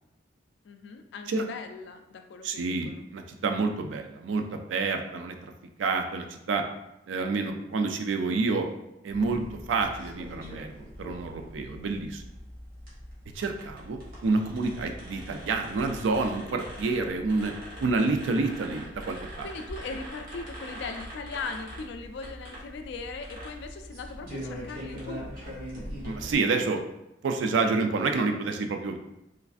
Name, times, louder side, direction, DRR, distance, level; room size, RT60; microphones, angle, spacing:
voice 1, 0.6-3.1 19.4-25.3, left 4 dB, 65° left, 6 dB, 0.3 m, -39 dB
voice 2, 2.4-4.4 4.7-5.5 5.8-6.6 7.1-8.7 9.0-12.2 13.4-17.5 17.8-19.5 26.0-26.8 27.2-29.0, right 3 dB, 75° right, 5 dB, 0.3 m, -28 dB
sound 1, 9.1-26.3, equal, 50° right, 1.0 m, -42 dB
3.2 x 2.4 x 2.4 m, 0.90 s
head